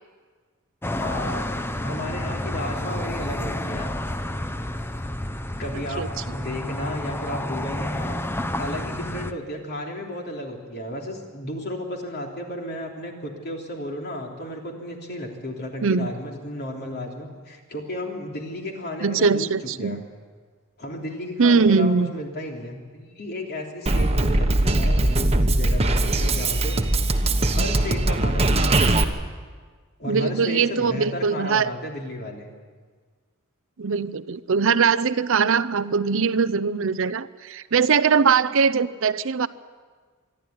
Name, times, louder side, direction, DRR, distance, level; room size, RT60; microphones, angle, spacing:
sound 1, 0.8-9.3, left 1 dB, 10° left, 0.7 m, -30 dB
voice 1, 1.0-1.5 1.8-3.9 5.6-8.2 8.6-19.5 19.8-20.0 20.8-26.8 27.5-28.8 30.0-32.5, left 1 dB, 50° left, 1 dB, 3.4 m, -33 dB
voice 2, 15.8-16.1 19.0-20.0 21.4-22.1 30.1-31.7 33.8-39.5, right 5 dB, 65° right, 15 dB, 0.6 m, -21 dB
Drum kit, 23.9-29.0, right 2 dB, 30° right, 1.2 m, -20 dB
26.0 x 11.5 x 9.5 m, 1.5 s
head